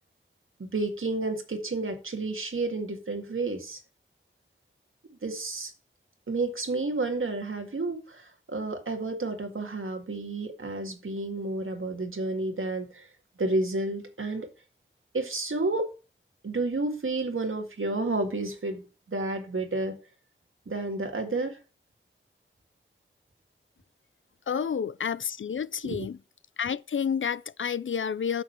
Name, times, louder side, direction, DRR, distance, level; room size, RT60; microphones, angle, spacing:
voice 1, 0.6-3.8 5.2-5.7 6.3-13.1 13.4-14.5 15.1-15.9 16.4-20.0 20.7-21.6 24.5-24.8 25.8-26.1, right 2 dB, 90° right, 1.9 m, -31 dB
voice 2, 24.5-26.2 26.6-28.4, left 7 dB, 75° left, 0.4 m, -30 dB
9.0 x 6.2 x 4.4 m
wide cardioid pair, 50°, 20 cm